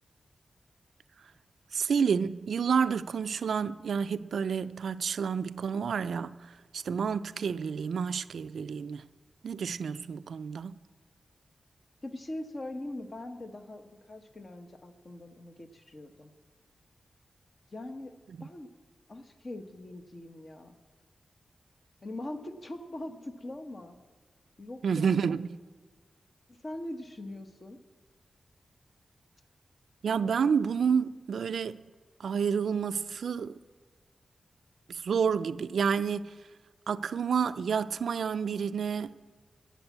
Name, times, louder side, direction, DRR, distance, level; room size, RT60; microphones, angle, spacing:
voice 1, 1.7-6.4 6.7-9.0 9.4-10.8 24.8-25.5 30.0-31.8 32.2-33.5 34.9-36.2 36.9-39.1, right 6 dB, 90° right, 0.4 m, -29 dB
voice 2, 12.0-16.3 17.7-18.1 18.4-18.7 19.1-20.7 22.0-24.0 24.6-25.5 26.5-27.8, left 1 dB, 40° left, 1.1 m, -42 dB
13.5 x 7.4 x 8.2 m
wide cardioid pair, 100°, 0 cm